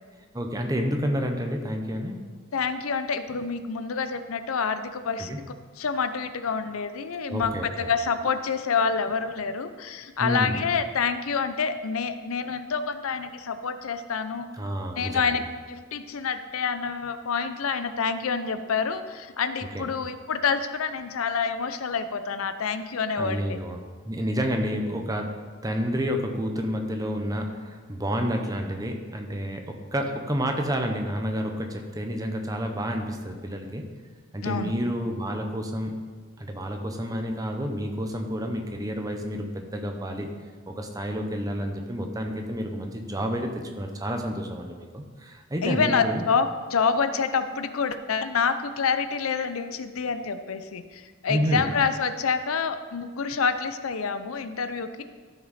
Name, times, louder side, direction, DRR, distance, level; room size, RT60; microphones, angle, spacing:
voice 1, 0.3-2.2 5.3-5.4 7.3-7.9 10.2-10.7 14.5-15.4 19.7-19.9 23.2-23.8 24.0-25.4 25.6-33.8 34.3-36.0 36.4-40.3 40.7-46.2 51.3-51.6, equal, 15° right, 4 dB, 0.8 m, -29 dB
voice 2, 2.5-5.4 5.8-14.5 15.0-23.6 34.4-34.7 45.6-55.0, left 5 dB, 85° left, 11 dB, 0.6 m, -27 dB
13.0 x 6.0 x 4.2 m, 1.5 s
head